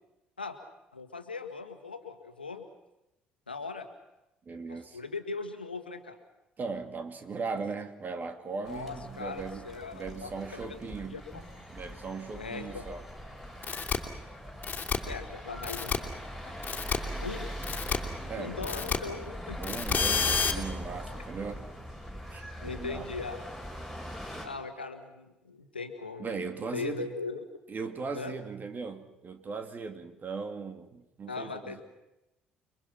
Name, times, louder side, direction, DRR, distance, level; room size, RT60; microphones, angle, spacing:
voice 1, 0.9-2.7 3.5-3.9 4.7-6.2 8.6-11.4 12.3-12.9 15.0-16.0 16.4-16.6 17.2-17.5 18.4-19.6 20.3-20.6 22.6-23.5 24.4-27.4 28.1-28.3 31.3-31.8, left 4 dB, 85° left, 1.8 m, -39 dB
voice 2, 4.5-5.0 6.6-11.2 11.7-13.0 18.3-18.6 19.6-21.7 22.3-23.1 26.2-27.1 27.7-31.8, right 4 dB, 35° right, 2.8 m, -38 dB
sound 1, 8.6-24.5, equal, 5° right, 7.0 m, -41 dB
sound 2, 13.6-14.0 14.6-15.0 15.6-16.0 16.6-17.0 17.6-18.0 18.6-19.0 19.6-20.5, left 5 dB, 30° left, 3.1 m, -29 dB
29.5 x 22.5 x 6.0 m
figure-of-eight pair, 50°, 5 cm